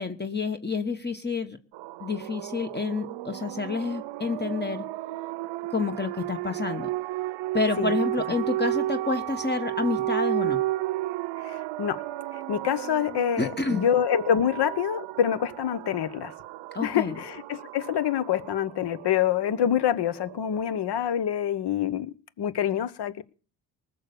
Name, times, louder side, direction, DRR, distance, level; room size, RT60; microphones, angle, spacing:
voice 1, 0.0-1.6 2.0-4.8 5.7-6.9 7.5-10.6 13.4-13.8 16.7-17.1, left 4 dB, 25° left, 1.3 m, -29 dB
sound 1, 1.7-21.1, right 16 dB, 85° right, 0.7 m, -33 dB
voice 2, 11.4-12.0 12.5-16.3 16.8-22.1 22.4-23.2, left 9 dB, 65° left, 1.2 m, -26 dB
19.5 x 6.8 x 6.8 m
cardioid pair, 70°, 43 cm